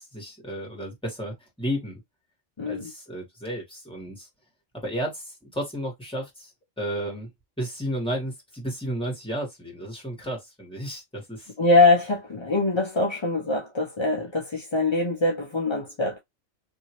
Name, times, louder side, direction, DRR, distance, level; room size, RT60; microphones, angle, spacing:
voice 1, 0.0-2.0 2.6-4.3 4.8-6.5 6.8-7.3 7.6-11.5, equal, 5° left, 1.4 m, -33 dB
voice 2, 2.6-2.9 11.6-16.2, left 2 dB, 40° left, 0.4 m, -23 dB
2.8 x 2.6 x 2.9 m
omnidirectional pair, 1.3 m